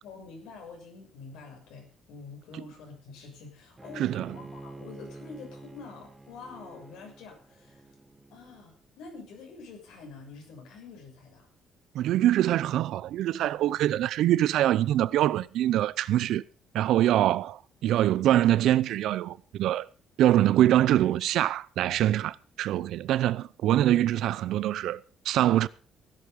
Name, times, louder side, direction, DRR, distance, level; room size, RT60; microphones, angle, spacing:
voice 1, 0.0-7.8 8.3-11.5, left 4 dB, 90° left, 6.6 m, -46 dB
Bowed string instrument, 3.8-8.9, right 2 dB, 15° right, 0.8 m, -48 dB
voice 2, 4.0-4.3 11.9-16.4 16.7-19.9 20.2-25.7, right 13 dB, 70° right, 0.6 m, -24 dB
16.0 x 11.5 x 5.3 m
cardioid pair, 150°, 0 cm